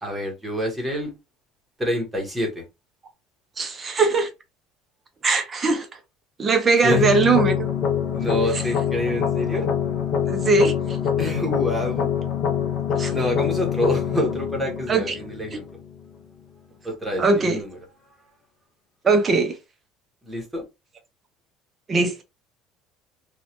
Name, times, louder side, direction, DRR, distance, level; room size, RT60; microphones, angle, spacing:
voice 1, 0.0-1.1 1.8-2.6 6.8-7.1 8.1-9.7 11.2-12.1 13.1-15.7 16.8-17.8 20.2-20.6, left 1 dB, 5° right, 0.9 m, -27 dB
voice 2, 3.6-4.3 5.2-5.9 6.4-7.7 8.5-8.6 10.3-11.0 12.9-13.1 14.9-15.1 17.2-17.6 19.0-19.6 21.9-22.2, right 4 dB, 20° right, 0.4 m, -20 dB
sound 1, 6.9-15.9, left 8 dB, 40° left, 0.5 m, -25 dB
3.0 x 2.1 x 2.8 m
cardioid pair, 165°, 0 cm